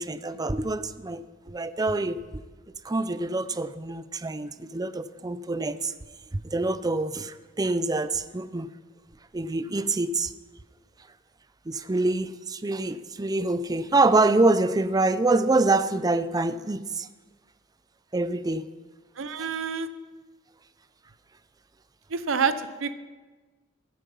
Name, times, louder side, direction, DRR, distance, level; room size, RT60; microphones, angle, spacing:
voice 1, 0.0-2.2 2.8-5.9 6.3-8.7 9.3-10.3 11.7-17.1 18.1-18.6 19.4-19.5, right 2 dB, 20° right, 13 dB, 0.5 m, -25 dB
voice 2, 19.2-19.9 22.1-22.5 22.8-22.9, right 6 dB, 70° right, 12 dB, 0.7 m, -27 dB
15.0 x 9.9 x 5.4 m, 1.3 s
head